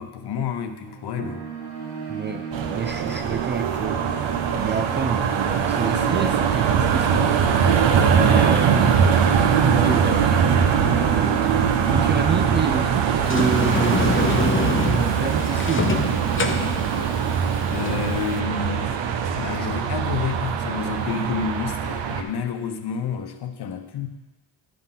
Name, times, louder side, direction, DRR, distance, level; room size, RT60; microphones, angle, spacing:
voice 1, 0.0-1.4 17.7-19.0 19.4-24.1, left 6 dB, 55° left, 8 dB, 0.9 m, -29 dB
sound 1, 0.8-14.0, right 5 dB, 85° right, 1.4 m, -35 dB
voice 2, 2.1-9.3 9.7-10.5 10.9-16.1, right 6 dB, 25° right, 7 dB, 0.3 m, -29 dB
sound 2, 2.5-22.2, right 7 dB, 65° right, 0.8 m, -21 dB
Sliding door, 13.2-18.4, left 4 dB, 25° left, 0.7 m, -26 dB
10.5 x 3.8 x 5.7 m, 1.1 s
supercardioid pair, 65°, 48 cm